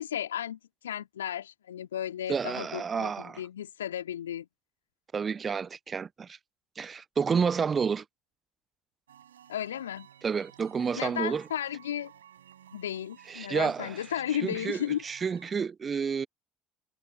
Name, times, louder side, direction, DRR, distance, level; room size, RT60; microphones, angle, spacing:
voice 1, 0.0-4.5 9.5-10.1 11.0-12.1 12.7-15.0, left 10 dB, 80° left, 2.9 m, -34 dB
voice 2, 2.3-3.4 5.1-6.4 6.8-8.0 10.2-11.5 13.3-14.0 14.3-16.3, right 6 dB, 35° right, 0.6 m, -30 dB
sound 1, 9.1-15.6, right 10 dB, 80° right, 4.8 m, -55 dB
figure-of-eight pair, 55°, 0 cm